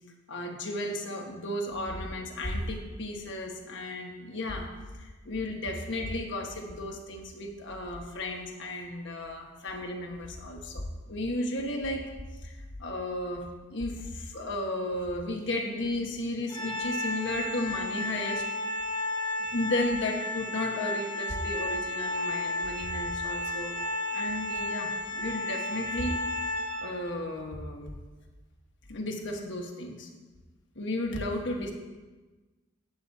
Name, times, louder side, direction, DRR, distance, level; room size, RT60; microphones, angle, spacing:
voice 1, 0.3-4.7 4.9-12.0 12.4-18.4 19.5-23.7 24.1-26.2 26.8-28.0 28.9-30.1 30.7-31.7, left 1 dB, 65° left, 2 dB, 1.4 m, -34 dB
Organ, 16.5-27.2, left 1 dB, 20° left, 1.5 m, -33 dB
16.5 x 7.9 x 2.8 m, 1.2 s
head